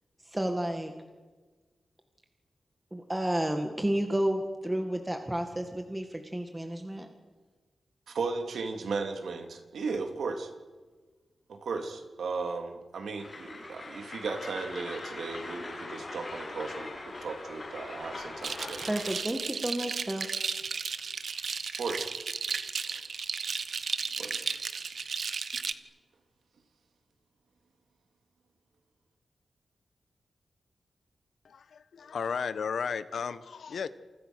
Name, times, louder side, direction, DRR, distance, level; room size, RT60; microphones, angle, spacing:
voice 1, 0.2-0.9 2.9-7.1 18.8-20.4, right 1 dB, 10° right, 4 dB, 2.0 m, -31 dB
voice 2, 8.1-10.5 11.5-18.8 21.8-22.1 22.8-23.1 24.2-24.4, right 4 dB, 80° right, 5 dB, 3.5 m, -36 dB
Train, 13.2-19.2, left 2 dB, 30° left, 7.1 m, -41 dB
sound 1, 18.4-25.7, right 5 dB, 55° right, 1.2 m, -34 dB
voice 3, 31.4-33.9, left 6 dB, 70° left, 13 dB, 1.3 m, -34 dB
29.5 x 28.5 x 6.6 m, 1.4 s
wide cardioid pair, 155°, 0 cm